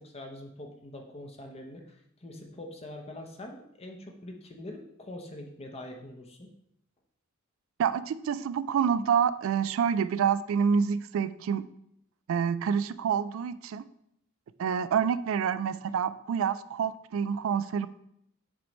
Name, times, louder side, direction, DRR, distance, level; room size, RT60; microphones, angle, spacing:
voice 1, 0.0-6.5, left 1 dB, 30° left, 2 dB, 0.8 m, -44 dB
voice 2, 7.8-11.6 12.3-13.8 14.6-17.9, right 7 dB, 70° right, 14 dB, 0.3 m, -27 dB
6.0 x 3.2 x 5.1 m, 0.74 s
head